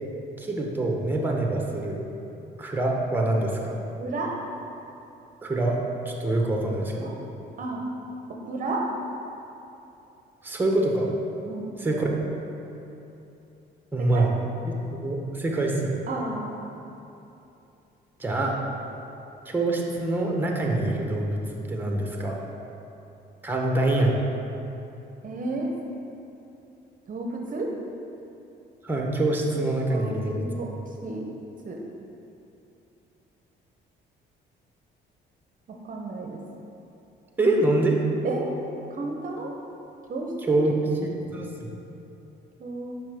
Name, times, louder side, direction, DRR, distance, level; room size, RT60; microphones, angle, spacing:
voice 1, 0.4-2.0 2.6-3.8 5.4-7.1 10.4-11.1 11.8-12.1 13.9-14.3 14.6-15.9 18.2-18.6 19.4-21.4 21.7-22.4 23.4-24.1 28.8-30.5 37.4-38.0 40.5-40.7 41.0-41.7, right 2 dB, 10° right, 0 dB, 0.9 m, -25 dB
voice 2, 4.0-4.3 7.0-7.1 7.6-7.8 8.3-8.8 11.4-12.1 14.0-14.3 16.1-16.7 25.2-25.7 27.1-27.7 29.8-30.7 31.0-31.2 31.6-31.8 35.7-36.4 38.2-38.5 38.9-39.5 40.1-40.7 42.6-43.0, right 3 dB, 45° right, 0 dB, 0.7 m, -32 dB
7.0 x 5.4 x 3.4 m, 2.9 s
cardioid pair, 95°, 19 cm